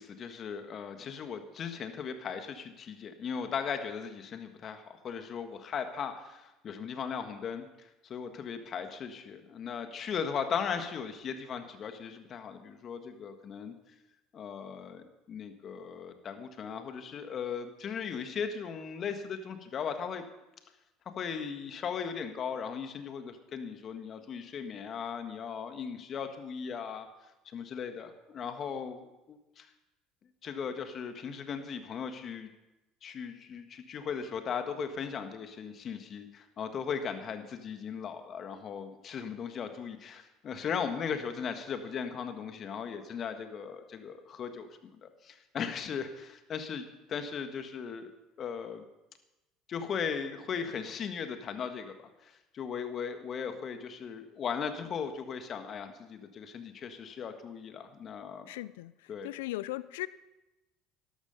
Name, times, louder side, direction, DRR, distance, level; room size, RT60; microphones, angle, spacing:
voice 1, 0.0-13.7 14.3-20.2 21.0-27.1 27.5-29.7 30.4-32.5 33.0-48.9 49.7-58.5 59.1-59.3, left 6 dB, 45° left, 7 dB, 1.6 m, -38 dB
voice 2, 58.5-60.1, left 18 dB, 80° left, 18 dB, 0.4 m, -38 dB
12.5 x 12.0 x 5.4 m, 0.98 s
hypercardioid pair, 70°, 0 cm